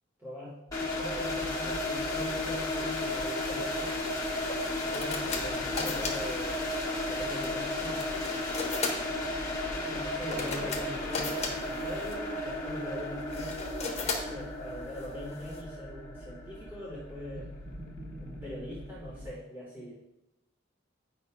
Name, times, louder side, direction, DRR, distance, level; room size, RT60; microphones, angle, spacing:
voice 1, 0.2-0.6 1.0-4.0 4.8-6.6 7.1-8.0 9.7-17.5 18.2-20.1, left 1 dB, 10° right, -7 dB, 1.3 m, -42 dB
sound 1, 0.7-19.3, equal, 55° left, 0.9 m, -47 dB
sound 2, 0.7-17.5, left 1 dB, 15° left, 1.1 m, -34 dB
sound 3, 4.4-15.6, left 4 dB, 35° left, 1.1 m, -39 dB
voice 2, 10.3-10.6 17.3-19.0, right 1 dB, 50° right, -5 dB, 1.1 m, -44 dB
9.4 x 5.5 x 2.2 m, 0.92 s
head